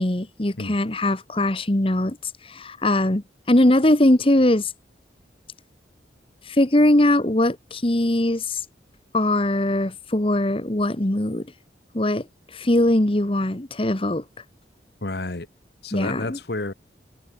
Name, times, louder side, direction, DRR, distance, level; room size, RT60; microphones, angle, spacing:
voice 1, 0.0-4.7 6.5-8.6 9.1-11.5 11.9-12.2 12.5-14.2 15.9-16.4, left 1 dB, 30° left, 1.2 m, -21 dB
voice 2, 15.0-15.5 15.8-16.7, left 2 dB, 60° left, 1.3 m, -30 dB
head